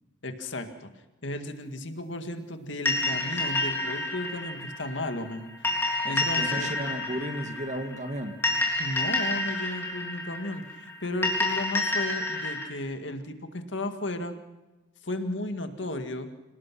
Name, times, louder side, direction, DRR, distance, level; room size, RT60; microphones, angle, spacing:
voice 1, 0.2-0.9 1.2-5.5 6.0-6.7 8.8-14.3 15.0-16.3, left 1 dB, 70° left, 7 dB, 2.0 m, -34 dB
sound 1, 2.9-12.6, left 2 dB, 15° left, 3.7 m, -29 dB
voice 2, 6.1-8.4, right 1 dB, 40° right, 5 dB, 2.3 m, -34 dB
28.0 x 18.5 x 6.1 m, 1.1 s
head